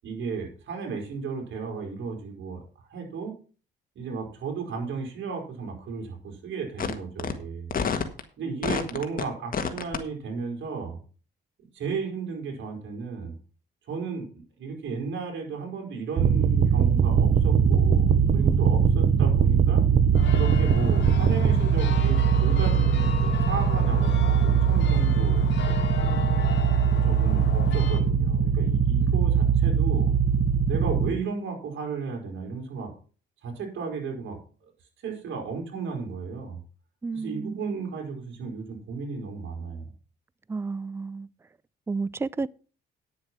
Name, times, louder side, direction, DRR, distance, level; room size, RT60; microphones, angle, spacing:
voice 1, 0.0-3.4 3.9-7.7 8.4-11.0 11.7-13.4 13.9-14.3 14.6-19.8 20.3-26.4 27.0-30.1 30.7-32.9 33.4-34.7 35.0-36.6 37.1-39.9, right 5 dB, 70° right, 4.4 m, -34 dB
sound 1, 6.8-6.9 7.2-7.3 7.7-8.2 8.6-9.2 9.5-10.0, left 6 dB, 45° left, 1.6 m, -27 dB
sound 2, 16.2-31.1, right 7 dB, 50° right, 0.8 m, -21 dB
sound 3, 20.1-28.0, left 7 dB, 65° left, 2.2 m, -35 dB
voice 2, 37.0-37.6 40.5-41.3 41.9-42.5, right 4 dB, 10° right, 0.4 m, -31 dB
9.5 x 7.3 x 5.9 m
cardioid pair, 90°, 20 cm